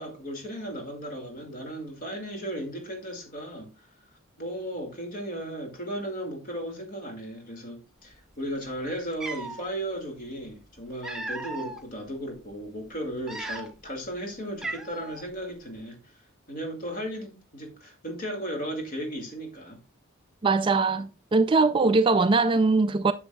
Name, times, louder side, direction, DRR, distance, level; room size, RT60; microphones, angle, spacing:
voice 1, 0.0-3.7 4.4-16.0 16.5-19.8, equal, 40° left, 2.1 m, -35 dB
Cat, 8.7-8.8 9.1-9.7 10.6-11.8 12.4-12.5 13.1-13.9 14.2-14.3 14.6-15.2, right 2 dB, ahead, 0.8 m, -36 dB
voice 2, 20.4-23.1, right 3 dB, 25° right, 0.3 m, -21 dB
10.0 x 7.1 x 2.3 m
head